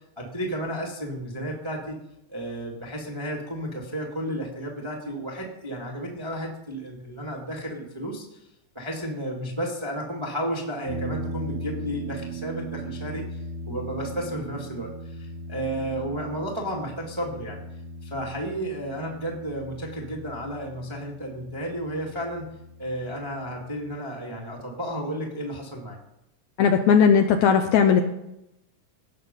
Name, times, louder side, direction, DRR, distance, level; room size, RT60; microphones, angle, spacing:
voice 1, 0.2-2.0 2.3-8.4 8.7-17.6 18.0-22.5 22.8-26.0, equal, 15° right, -2 dB, 0.9 m, -32 dB
sound 1, 10.9-24.0, right 1 dB, 50° right, 1.2 m, -38 dB
voice 2, 26.6-28.0, left 7 dB, 75° left, 5 dB, 1.8 m, -18 dB
17.5 x 6.5 x 5.3 m, 0.85 s
omnidirectional pair, 3.9 m